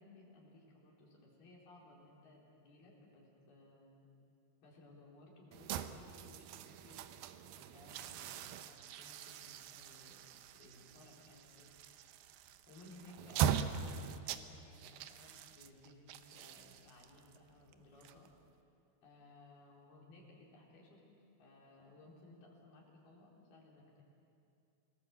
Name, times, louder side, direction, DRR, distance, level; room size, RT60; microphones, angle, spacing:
voice 1, 0.0-4.1 4.6-7.0 7.6-10.3 10.5-11.7 12.7-18.3 19.0-21.0 21.4-24.0, left 2 dB, 75° left, -3 dB, 6.1 m, -60 dB
sound 1, 5.5-18.6, right 9 dB, 75° right, 2.3 m, -42 dB
28.5 x 19.5 x 8.0 m, 2.6 s
omnidirectional pair, 4.6 m